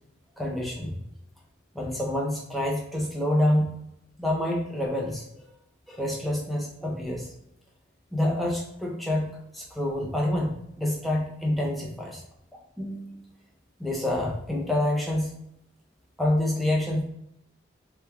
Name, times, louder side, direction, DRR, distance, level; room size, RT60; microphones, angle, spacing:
voice 1, 0.4-1.0 1.7-3.7 4.2-5.5 5.9-7.3 8.1-12.2 12.5-13.2 13.8-15.3 16.2-17.0, left 1 dB, ahead, -3 dB, 0.6 m, -27 dB
3.3 x 2.2 x 3.4 m, 0.77 s
head